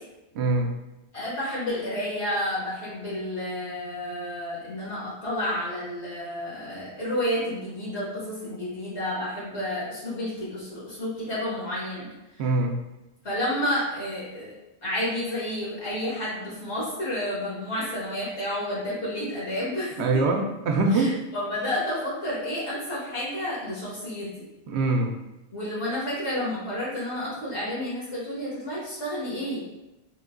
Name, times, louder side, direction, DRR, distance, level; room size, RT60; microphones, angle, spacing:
voice 1, 0.4-0.7 12.4-12.8 20.0-21.1 24.7-25.1, right 2 dB, 75° right, 3 dB, 0.8 m, -23 dB
voice 2, 1.1-12.1 13.2-14.5 14.8-20.2 20.9-24.3 25.5-29.6, left 1 dB, 75° left, -8 dB, 1.8 m, -30 dB
4.4 x 2.7 x 2.5 m, 0.98 s
omnidirectional pair, 1.1 m